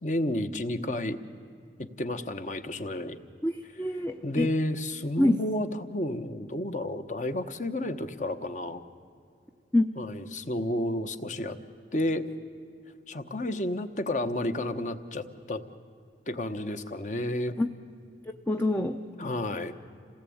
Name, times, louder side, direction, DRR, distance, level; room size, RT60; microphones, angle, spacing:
voice 1, 0.0-1.2 1.8-3.2 4.2-8.8 10.0-11.6 11.9-12.3 13.1-15.6 16.3-17.6 19.2-19.7, left 1 dB, 45° left, 9 dB, 1.0 m, -31 dB
voice 2, 3.4-4.5 5.2-5.4 9.7-9.9 17.6-17.7 18.5-19.0, left 1 dB, 10° left, 5 dB, 0.6 m, -25 dB
27.5 x 18.0 x 8.6 m, 2.4 s
head